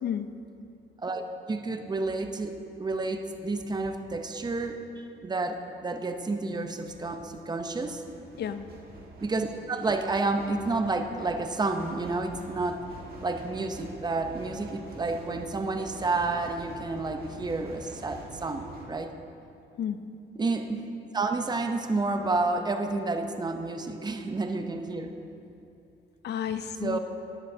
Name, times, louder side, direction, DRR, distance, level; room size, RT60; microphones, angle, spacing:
voice 1, 0.0-0.4 8.4-8.7 19.8-20.0 26.2-27.0, left 8 dB, 60° left, 11 dB, 0.5 m, -31 dB
voice 2, 1.0-8.0 9.2-12.8 13.2-19.1 20.4-20.8 21.1-25.1 26.8-27.0, right 3 dB, 20° right, 6 dB, 0.7 m, -30 dB
sound 1, 6.9-18.9, right 1 dB, 50° right, 1.8 m, -46 dB
14.0 x 10.5 x 2.8 m, 2.6 s
cardioid pair, 90°, 20 cm